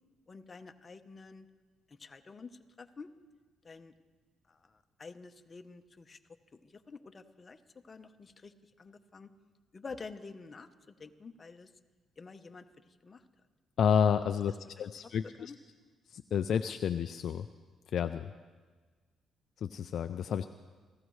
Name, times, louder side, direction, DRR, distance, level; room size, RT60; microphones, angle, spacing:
voice 1, 0.3-1.5 1.9-3.1 3.6-3.9 4.5-6.2 6.6-7.6 7.9-9.3 9.7-11.7 12.2-13.2 15.4-15.6, left 4 dB, 35° left, 7 dB, 0.9 m, -49 dB
voice 2, 13.8-14.5 14.8-15.5 16.1-17.5 17.9-18.3 19.6-20.4, left 7 dB, 65° left, 9 dB, 0.4 m, -30 dB
24.5 x 15.0 x 3.2 m, 1.4 s
cardioid pair, 90°, 0 cm